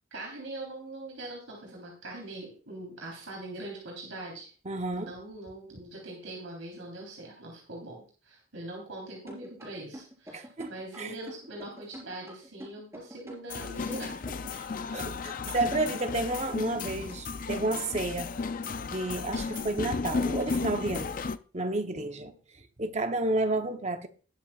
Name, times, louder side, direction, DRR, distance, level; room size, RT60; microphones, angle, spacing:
voice 1, 0.1-4.5 4.9-14.2 22.0-22.3, right 2 dB, 80° right, 3.6 m, -42 dB
voice 2, 4.7-5.1 10.3-10.7 11.0-11.2 14.5-14.6 14.9-18.3 18.8-21.2 21.5-22.3 22.8-24.1, right 2 dB, 35° right, 0.8 m, -31 dB
sound 1, 9.3-14.6, equal, 15° right, 4.2 m, -46 dB
sound 2, 13.5-21.4, left 4 dB, 45° left, 0.4 m, -34 dB
20.0 x 7.1 x 2.4 m
head